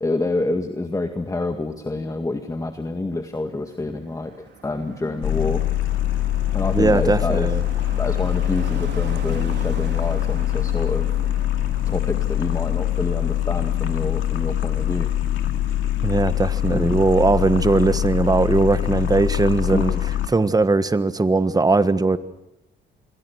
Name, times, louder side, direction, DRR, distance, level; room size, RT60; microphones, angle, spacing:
voice 1, 0.0-5.6 6.5-7.5 8.0-11.1 11.9-15.1 16.7-17.0 19.7-20.0, left 2 dB, 15° left, 6 dB, 2.0 m, -27 dB
Car passing by, 3.1-17.9 18.2-18.5, right 6 dB, 60° right, 3.9 m, -42 dB
sound 1, 5.2-20.3, left 12 dB, 80° left, 2.6 m, -23 dB
voice 2, 6.7-7.6 16.0-19.9 20.3-22.2, right 3 dB, 20° right, 12 dB, 1.5 m, -19 dB
27.5 x 22.5 x 6.5 m, 0.91 s
cardioid pair, 90°, 20 cm